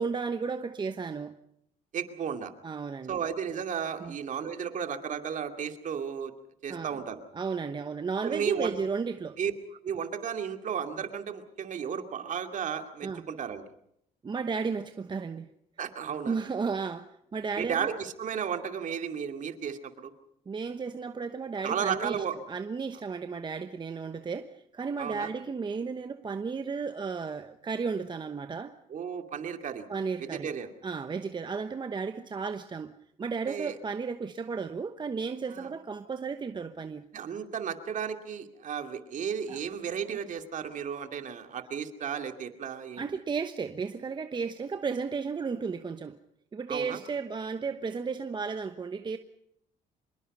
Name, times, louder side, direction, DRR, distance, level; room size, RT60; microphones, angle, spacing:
voice 1, 0.0-1.4 2.6-3.2 4.0-4.1 6.7-7.0 7.3-9.4 13.0-13.2 14.2-15.5 16.3-17.9 20.5-28.7 29.9-30.5 30.8-32.9 33.2-37.0 39.5-39.6 43.0-46.2 46.5-49.2, right 5 dB, 25° right, 1.1 m, -34 dB
voice 2, 1.9-2.5 3.1-6.3 6.6-7.2 8.2-8.8 9.4-9.5 9.8-13.6 15.8-16.4 17.6-20.1 21.6-22.4 25.0-25.3 28.9-29.9 30.2-30.7 33.5-33.8 35.5-35.7 37.1-43.0 46.7-47.0, right 7 dB, 50° right, 2.5 m, -34 dB
25.5 x 22.0 x 5.5 m
cardioid pair, 110°, 17 cm